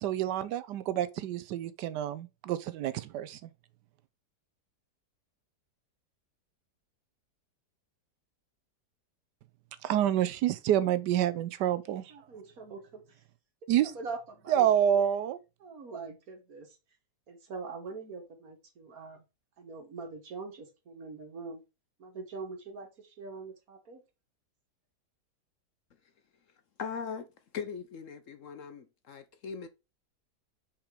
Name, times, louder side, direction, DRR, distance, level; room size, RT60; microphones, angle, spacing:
voice 1, 0.0-3.5 9.8-12.0 13.7-13.9 14.5-15.4, right 10 dB, 85° right, 1.3 m, -28 dB
voice 2, 12.1-13.0 13.8-14.7 14.9-15.0 15.6-16.7 17.3-19.2 19.6-21.6 22.0-22.9 23.2-24.0, right 4 dB, 60° right, 2.0 m, -43 dB
voice 3, 26.8-27.3 27.5-29.7, left 6 dB, 60° left, 0.9 m, -39 dB
5.8 x 5.2 x 4.9 m
omnidirectional pair, 1.8 m